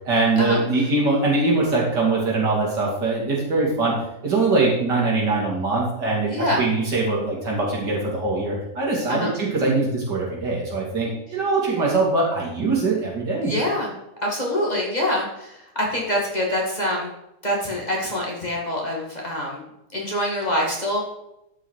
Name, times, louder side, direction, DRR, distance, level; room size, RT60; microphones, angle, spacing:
voice 1, 0.1-13.5, right 3 dB, 80° right, -4 dB, 3.4 m, -22 dB
voice 2, 6.3-6.6 9.1-9.3 13.4-13.9 14.2-17.1 17.4-19.6 19.9-21.0, left 1 dB, 25° left, -3 dB, 2.4 m, -25 dB
12.0 x 5.8 x 4.9 m, 0.86 s
omnidirectional pair, 1.8 m